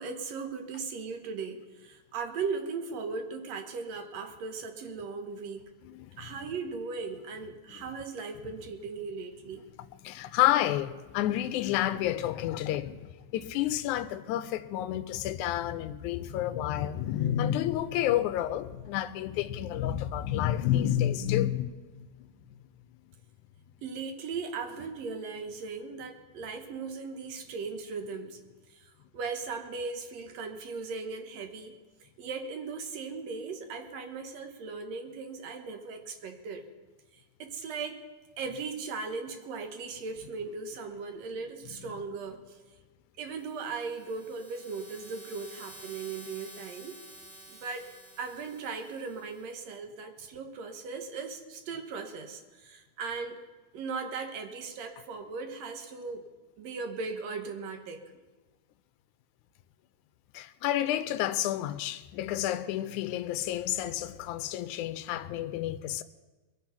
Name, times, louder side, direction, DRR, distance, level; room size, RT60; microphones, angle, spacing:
voice 1, 0.0-5.7 6.2-9.7 23.8-28.4 28.7-36.6 37.4-38.0 38.4-42.6 43.2-47.0 47.5-47.9 48.2-53.4 53.7-56.3 56.6-58.0, right 4 dB, 60° right, 2.1 m, -38 dB
voice 2, 5.8-6.3 9.8-22.3 60.3-66.0, left 12 dB, 80° left, 1.8 m, -30 dB
sound 1, 43.4-49.6, right 1 dB, 30° right, 2.9 m, -51 dB
21.5 x 8.1 x 5.8 m
omnidirectional pair, 3.9 m